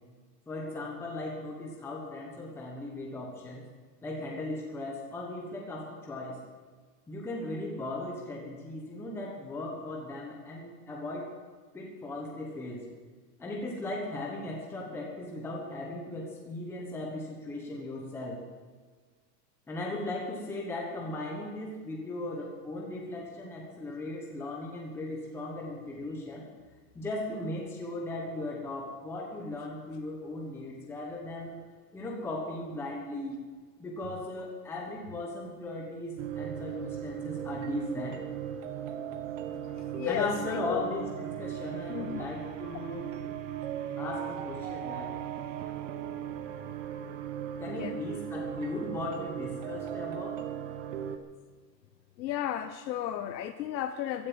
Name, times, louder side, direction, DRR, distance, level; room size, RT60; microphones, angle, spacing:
voice 1, 0.5-3.7 4.0-6.4 7.1-11.3 11.7-12.9 13.4-18.4 19.7-26.5 26.9-31.6 31.9-33.4 33.8-38.2 40.0-41.1 41.4-43.1 44.0-45.2 45.6-45.8 47.6-50.4, left 2 dB, 5° left, -2 dB, 1.1 m, -37 dB
sound 1, 36.2-51.2, right 10 dB, 45° right, 1.3 m, -37 dB
voice 2, 39.6-40.8 41.9-42.3 47.4-47.5 47.8-48.0 52.2-54.3, left 11 dB, 85° left, 9 dB, 1.1 m, -34 dB
15.5 x 11.0 x 7.5 m, 1.5 s
supercardioid pair, 175°, 50 cm